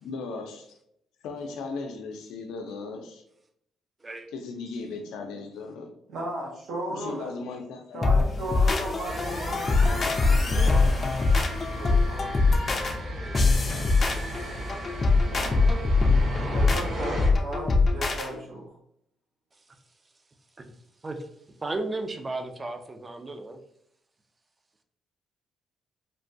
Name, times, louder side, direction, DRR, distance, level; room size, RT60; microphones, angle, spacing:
voice 1, 0.0-0.8 1.2-3.2 4.3-5.9 6.9-8.3, left 4 dB, 90° left, 0.5 m, -37 dB
voice 2, 6.1-7.4 7.9-11.3 11.7-12.6 15.3-15.7 16.5-18.8, right 1 dB, 75° right, 0.8 m, -36 dB
sound 1, 8.0-18.3, left 3 dB, 35° left, 0.4 m, -23 dB
sound 2, 9.0-17.3, equal, 50° right, 1.2 m, -35 dB
voice 3, 21.6-23.6, right 2 dB, 25° right, 0.4 m, -34 dB
3.2 x 2.2 x 2.5 m
cardioid pair, 90°, 0 cm